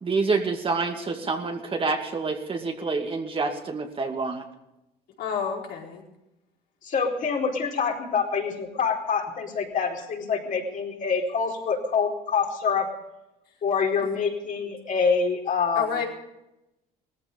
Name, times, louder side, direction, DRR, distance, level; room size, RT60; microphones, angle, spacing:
voice 1, 0.0-4.4, right 4 dB, 30° right, 4 dB, 2.4 m, -27 dB
voice 2, 5.2-6.0 15.7-16.1, left 7 dB, 70° left, -1 dB, 4.7 m, -29 dB
voice 3, 6.8-12.9 13.6-16.0, left 5 dB, 50° left, 1 dB, 4.4 m, -26 dB
18.5 x 14.5 x 5.4 m, 0.90 s
cardioid pair, 110°, 17 cm